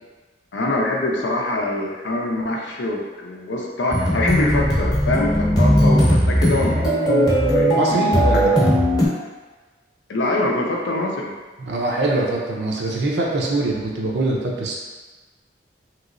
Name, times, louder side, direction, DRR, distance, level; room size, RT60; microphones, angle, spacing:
voice 1, 0.5-8.5 10.1-11.3, left 2 dB, 90° left, 0 dB, 0.5 m, -24 dB
sound 1, 3.9-9.1, equal, 20° left, 0.8 m, -18 dB
voice 2, 7.7-8.7 11.6-14.8, right 2 dB, 70° right, -2 dB, 0.6 m, -23 dB
3.1 x 2.9 x 2.6 m, 1.3 s
head